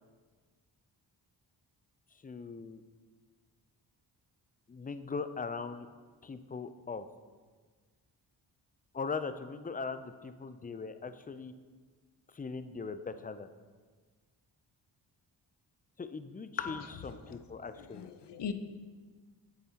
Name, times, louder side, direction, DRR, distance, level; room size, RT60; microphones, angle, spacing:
voice 1, 2.2-2.8 4.7-5.9 6.2-7.1 8.9-11.5 12.3-13.5 16.0-18.1, left 4 dB, 20° left, 11 dB, 0.4 m, -40 dB
voice 2, 17.8-18.5, left 7 dB, 60° left, 9 dB, 0.7 m, -38 dB
8.7 x 7.3 x 2.9 m, 1.5 s
supercardioid pair, 45°, 46 cm